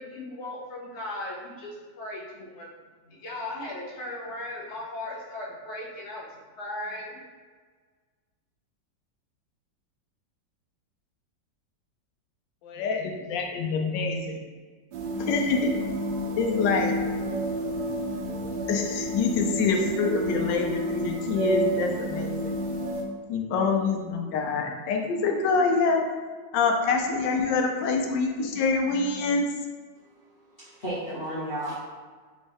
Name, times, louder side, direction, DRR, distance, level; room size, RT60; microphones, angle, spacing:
voice 1, 0.0-2.7 3.1-6.3 6.6-7.2, left 1 dB, 60° left, -3 dB, 0.7 m, -37 dB
voice 2, 12.6-14.4 15.2-15.7 16.4-16.9 18.7-22.6 23.3-26.0 26.5-29.4, left 4 dB, 80° left, 3 dB, 1.3 m, -26 dB
sound 1, 14.9-23.0, equal, 75° right, 1.2 m, -30 dB
voice 3, 30.6-31.7, right 1 dB, 40° left, -11 dB, 1.0 m, -32 dB
4.3 x 3.1 x 3.4 m, 1.5 s
omnidirectional pair, 2.0 m